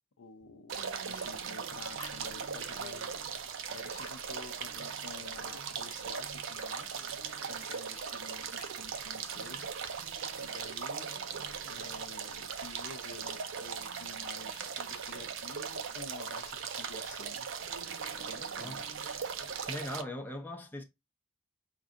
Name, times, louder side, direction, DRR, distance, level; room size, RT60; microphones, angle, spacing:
voice 1, 0.2-0.7 1.0-3.2 3.7-6.9 7.5-9.7 10.4-11.1 11.7-17.5 18.1-18.8, left 4 dB, 85° left, 0.6 m, -50 dB
sound 1, 0.7-20.0, right 6 dB, 60° right, 0.5 m, -39 dB
voice 2, 19.6-20.8, left 1 dB, 10° left, 0.6 m, -40 dB
5.3 x 2.5 x 3.6 m
head